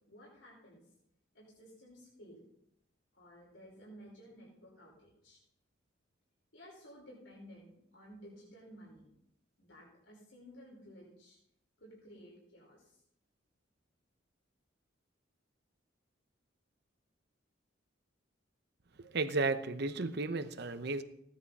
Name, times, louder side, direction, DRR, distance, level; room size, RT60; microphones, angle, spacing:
voice 1, 0.1-0.8 1.3-2.5 3.1-5.4 6.5-9.1 9.6-11.4 11.8-13.0, equal, 80° left, -4 dB, 5.1 m, -55 dB
voice 2, 19.1-21.0, right 3 dB, 60° right, 10 dB, 0.8 m, -33 dB
17.0 x 10.5 x 4.2 m, 0.76 s
head